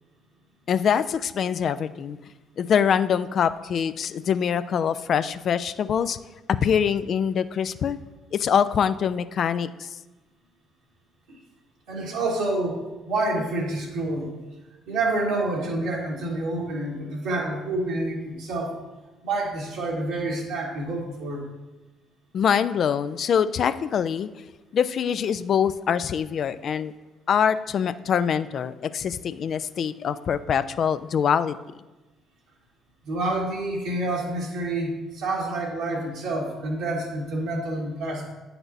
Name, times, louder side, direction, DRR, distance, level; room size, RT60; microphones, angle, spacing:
voice 1, 0.7-2.2 2.6-6.2 6.5-8.0 8.3-9.9 22.3-24.3 24.7-26.9 27.3-31.6, left 7 dB, 55° left, 13 dB, 0.3 m, -24 dB
voice 2, 11.9-12.8 13.1-14.3 14.9-18.8 19.2-21.4 33.0-38.3, right 2 dB, 80° right, -5 dB, 1.4 m, -28 dB
8.8 x 5.9 x 2.6 m, 1.1 s
hypercardioid pair, 50°, 0 cm